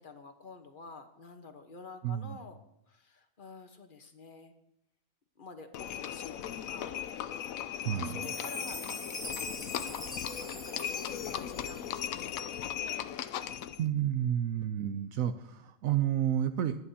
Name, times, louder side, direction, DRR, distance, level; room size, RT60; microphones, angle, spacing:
voice 1, 0.0-2.6 2.9-4.5 5.4-7.1 8.0-13.1, left 4 dB, 40° left, 6 dB, 1.2 m, -50 dB
voice 2, 2.0-2.4 7.8-8.2 13.8-16.8, right 10 dB, 75° right, 9 dB, 1.0 m, -30 dB
Livestock farm animals working animals, 5.7-13.8, left 10 dB, 75° left, 1.0 m, -37 dB
Chime, 8.2-12.4, equal, ahead, 1.7 m, -44 dB
21.5 x 9.7 x 2.8 m, 0.82 s
omnidirectional pair, 1.5 m